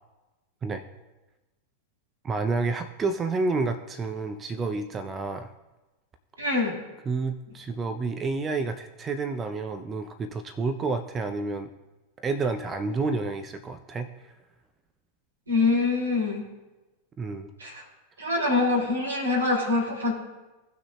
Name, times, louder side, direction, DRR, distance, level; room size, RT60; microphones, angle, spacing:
voice 1, 2.2-5.5 7.1-11.7 12.2-14.3 17.2-17.5 18.2-18.3, right 3 dB, 20° right, 8 dB, 0.5 m, -29 dB
voice 2, 6.4-6.7 15.5-16.4 17.6-17.8 18.2-20.1, left 3 dB, 75° right, -2 dB, 2.7 m, -24 dB
18.0 x 6.1 x 2.3 m, 1.1 s
figure-of-eight pair, 90°, 0 cm